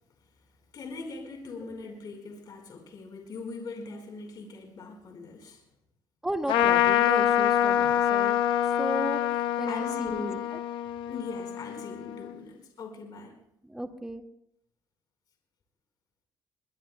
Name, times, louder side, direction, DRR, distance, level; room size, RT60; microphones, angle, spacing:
voice 1, 0.7-5.6 6.4-6.6 9.6-10.4 11.1-13.4, left 3 dB, 55° left, 2 dB, 4.5 m, -41 dB
voice 2, 6.2-8.4 8.8-9.2 9.6-10.4 13.6-14.2, right 1 dB, 5° right, 4 dB, 1.8 m, -34 dB
Trumpet, 6.5-12.3, left 12 dB, 80° left, 0.9 m, -26 dB
22.5 x 21.5 x 2.2 m, 0.77 s
cardioid pair, 95°, 8 cm